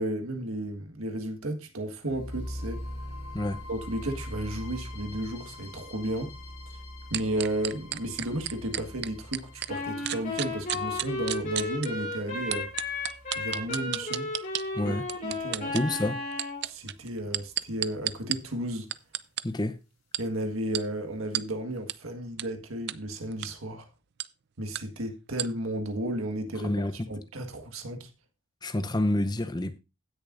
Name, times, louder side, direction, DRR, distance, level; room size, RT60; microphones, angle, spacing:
voice 1, 0.0-2.8 3.7-6.3 7.1-12.7 13.3-14.3 14.8-14.9 15.2-15.7 16.6-18.9 20.2-23.9 24.6-26.7 27.1-28.1, right 1 dB, 70° right, 1.7 m, -33 dB
sound 1, 2.1-16.1, left 1 dB, 85° left, 6.7 m, -43 dB
sound 2, 7.1-9.7 10.0-11.9 12.5-14.6 15.1-15.8 16.3-18.4 18.9-19.4 20.1-20.2 20.7-20.8 21.3-21.4 21.9-22.0 22.4-22.5 22.9-23.0 23.3-23.5 24.2-24.3 24.7-24.8 25.4-25.5, right 13 dB, 50° right, 0.4 m, -31 dB
Wind instrument woodwind instrument, 9.7-16.6, left 2 dB, 35° left, 5.6 m, -34 dB
voice 2, 14.7-15.1 15.7-16.2 19.4-19.8 26.6-27.0 28.6-29.8, left 1 dB, 20° left, 0.7 m, -28 dB
16.5 x 6.7 x 2.6 m
head